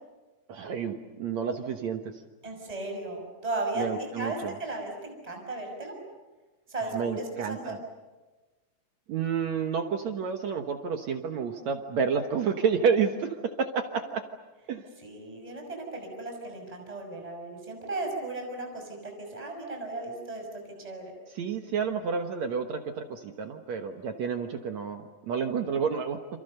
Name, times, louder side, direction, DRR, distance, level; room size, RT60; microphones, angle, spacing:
voice 1, 0.5-2.1 3.8-4.5 6.9-7.8 9.1-14.2 14.7-14.8 21.3-26.2, right 6 dB, 60° right, 5 dB, 2.2 m, -30 dB
voice 2, 2.4-5.9 6.7-7.7 15.0-20.5 20.8-21.1, right 2 dB, 10° right, 2 dB, 5.8 m, -36 dB
28.5 x 27.5 x 6.7 m, 1.2 s
omnidirectional pair, 4.1 m